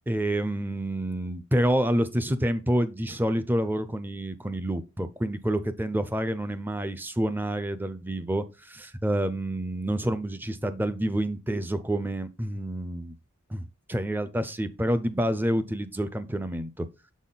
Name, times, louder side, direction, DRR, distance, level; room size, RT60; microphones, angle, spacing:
voice 1, 0.1-13.1 13.5-16.9, right 1 dB, 10° right, 0.4 m, -28 dB
6.8 x 4.1 x 3.8 m
head